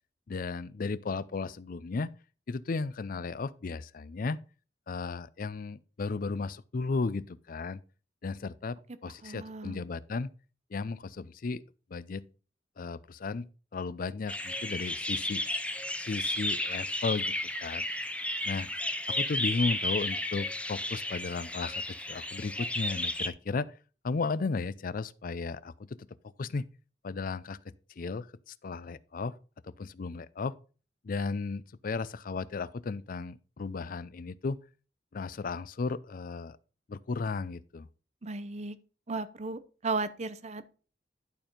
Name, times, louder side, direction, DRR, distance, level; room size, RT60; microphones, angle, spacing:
voice 1, 0.3-2.1 2.5-4.4 4.9-7.8 8.2-10.3 10.7-11.6 11.9-12.3 12.8-13.5 13.7-15.4 16.0-17.9 18.4-18.7 19.1-23.7 24.0-26.1 26.4-26.7 27.0-29.3 29.6-30.5 31.0-34.6 35.1-36.6 36.9-37.9, left 4 dB, 55° left, 0.5 m, -35 dB
voice 2, 9.2-9.8 38.2-38.8 39.1-40.7, right 3 dB, 40° right, 0.7 m, -35 dB
sound 1, 14.3-23.3, left 1 dB, 5° left, 0.7 m, -33 dB
11.5 x 4.4 x 5.1 m
head